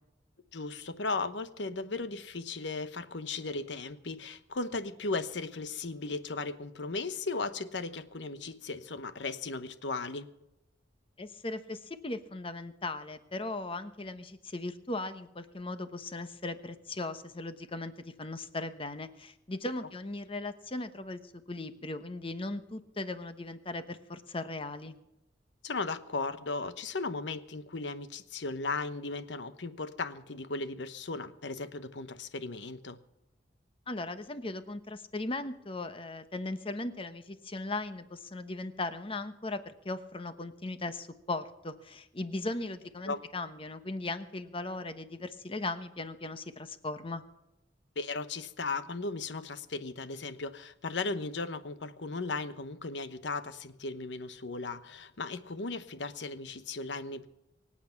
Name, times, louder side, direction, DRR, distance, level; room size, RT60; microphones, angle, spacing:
voice 1, 0.5-10.3 25.6-33.0 43.1-43.2 48.0-57.3, left 3 dB, 80° left, 12 dB, 1.1 m, -36 dB
voice 2, 11.2-21.2 21.5-25.0 33.9-47.2, left 2 dB, 30° left, 10 dB, 1.0 m, -38 dB
24.0 x 8.6 x 5.9 m, 0.91 s
head